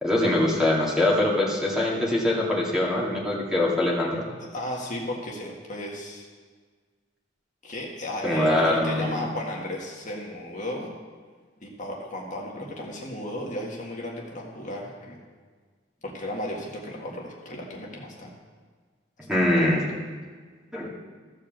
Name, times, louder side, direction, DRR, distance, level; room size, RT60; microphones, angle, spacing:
voice 1, 0.0-4.2 8.2-9.3 19.2-20.0 20.7-20.9, left 1 dB, 5° right, -4 dB, 2.1 m, -23 dB
voice 2, 4.5-6.3 7.6-10.9 11.6-15.2 16.0-18.3 19.3-19.8, left 1 dB, 40° left, -2 dB, 1.8 m, -34 dB
14.5 x 5.0 x 7.4 m, 1.5 s
head